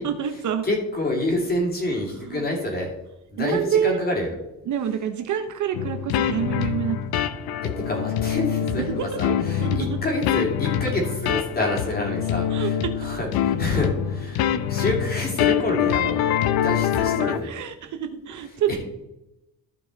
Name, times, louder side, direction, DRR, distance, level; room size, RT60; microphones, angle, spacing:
voice 1, 0.0-0.7 2.0-2.5 3.4-4.0 4.7-7.0 9.0-10.0 12.5-13.1 17.2-18.7, right 8 dB, 55° right, 7 dB, 0.8 m, -27 dB
voice 2, 0.6-2.9 3.3-4.3 7.9-16.3 16.6-17.5 18.7-18.8, left 1 dB, 25° left, -1 dB, 2.8 m, -27 dB
sound 1, 5.7-17.4, left 9 dB, 80° left, 0.7 m, -25 dB
14.5 x 5.1 x 4.0 m, 0.91 s
cardioid pair, 170°, 36 cm